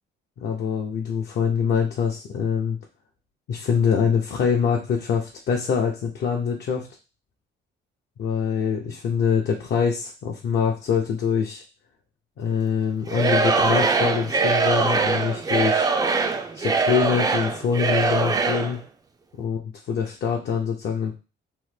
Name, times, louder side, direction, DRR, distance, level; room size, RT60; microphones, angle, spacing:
voice 1, 0.4-2.8 3.5-6.9 8.2-11.6 12.4-15.8 16.5-18.8 19.4-19.6 19.9-21.1, left 6 dB, 60° left, 0 dB, 0.6 m, -24 dB
Singing / Crowd, 13.1-18.8, right 4 dB, 20° right, 0.3 m, -22 dB
3.1 x 2.1 x 3.2 m, 0.31 s
cardioid pair, 90°, 20 cm